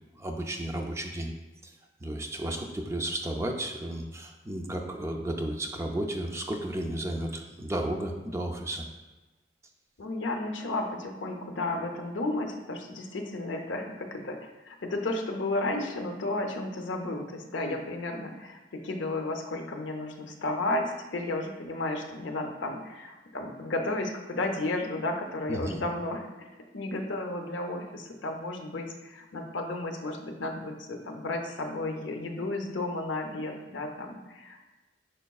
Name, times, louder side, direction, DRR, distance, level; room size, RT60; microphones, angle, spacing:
voice 1, 0.1-1.3 1.6-1.7 2.0-8.9 25.5-25.8, right 1 dB, 15° right, 2 dB, 0.4 m, -33 dB
voice 2, 10.0-14.4 14.6-26.2 26.7-34.6, left 2 dB, 90° left, 3 dB, 0.6 m, -33 dB
5.1 x 4.5 x 2.3 m, 1.2 s
head